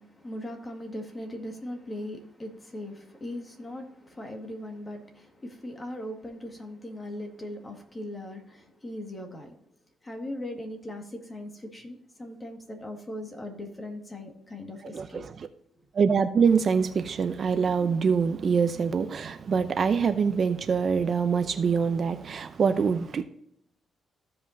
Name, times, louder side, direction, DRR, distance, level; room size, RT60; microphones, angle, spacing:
voice 1, 0.0-9.6 10.0-15.2, left 1 dB, 20° left, 1.9 m, -39 dB
voice 2, 14.9-15.5 15.9-23.2, right 6 dB, 45° right, 0.6 m, -25 dB
15.5 x 5.4 x 2.7 m
cardioid pair, 120°, 0 cm